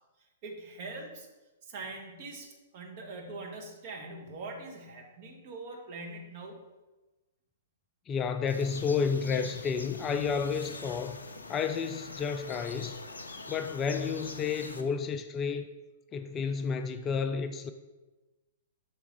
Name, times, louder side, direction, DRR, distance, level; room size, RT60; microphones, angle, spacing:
voice 1, 0.4-1.3 1.6-6.6, right 3 dB, 45° right, 1.2 m, -43 dB
voice 2, 8.1-11.2 11.5-13.0 13.5-15.6 16.1-17.7, left 6 dB, 25° left, 0.3 m, -31 dB
sound 1, 8.5-14.8, left 3 dB, 80° left, 0.5 m, -44 dB
6.0 x 3.4 x 4.6 m
figure-of-eight pair, 115°, 0 cm